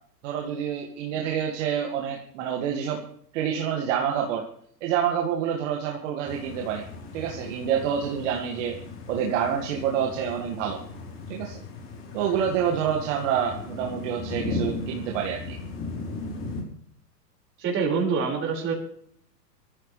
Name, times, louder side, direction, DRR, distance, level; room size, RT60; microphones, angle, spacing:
voice 1, 0.2-3.0 3.3-4.5 4.8-6.8 7.1-8.8 9.1-10.8 11.3-11.6 12.1-15.6, right 8 dB, 45° right, 1 dB, 2.3 m, -27 dB
sound 1, 6.2-16.6, left 3 dB, 25° left, 3.8 m, -37 dB
voice 2, 17.6-18.7, right 5 dB, 25° right, -1 dB, 5.3 m, -25 dB
21.5 x 14.5 x 3.3 m, 0.63 s
hypercardioid pair, 125°, 50 cm